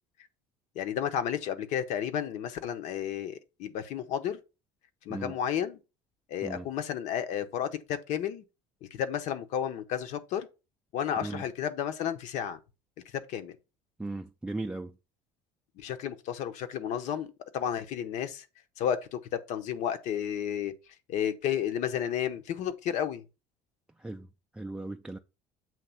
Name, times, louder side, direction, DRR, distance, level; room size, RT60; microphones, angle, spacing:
voice 1, 0.7-4.4 5.0-5.8 6.3-8.4 8.9-10.5 10.9-12.6 13.1-13.6 15.8-18.5 18.8-20.7 21.1-23.2, left 9 dB, 65° left, 1.0 m, -32 dB
voice 2, 14.0-14.9 24.0-24.3 24.5-25.2, right 2 dB, 5° right, 0.4 m, -37 dB
7.6 x 3.0 x 5.7 m
cardioid pair, 120°, 13 cm